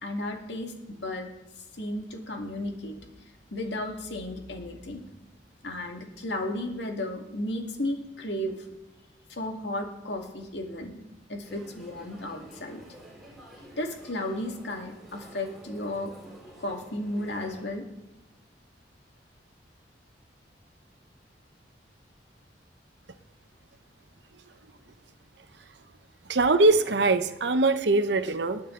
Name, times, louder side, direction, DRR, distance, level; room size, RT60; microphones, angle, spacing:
voice 1, 0.0-1.3 1.8-3.1 3.5-5.0 5.6-8.6 9.3-11.0 11.3-12.8 13.8-16.1 16.6-17.8, left 1 dB, 75° left, 3 dB, 2.0 m, -34 dB
sound 1, 11.4-17.6, right 1 dB, ahead, 4.6 m, -49 dB
voice 2, 26.3-28.6, right 3 dB, 70° right, 10 dB, 0.9 m, -22 dB
20.0 x 8.8 x 3.8 m, 1.0 s
head